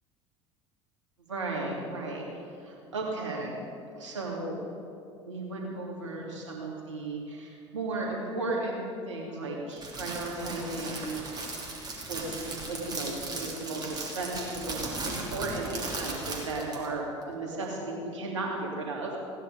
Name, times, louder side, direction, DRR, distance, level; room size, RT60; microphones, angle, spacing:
voice 1, 1.3-3.6 4.0-4.6 5.2-11.7 12.1-19.1, right 2 dB, 80° right, -2 dB, 2.7 m, -35 dB
Crackle, 9.7-16.9, right 2 dB, 25° right, 3.1 m, -37 dB
16.5 x 9.9 x 5.1 m, 2.6 s
figure-of-eight pair, 65°, 16 cm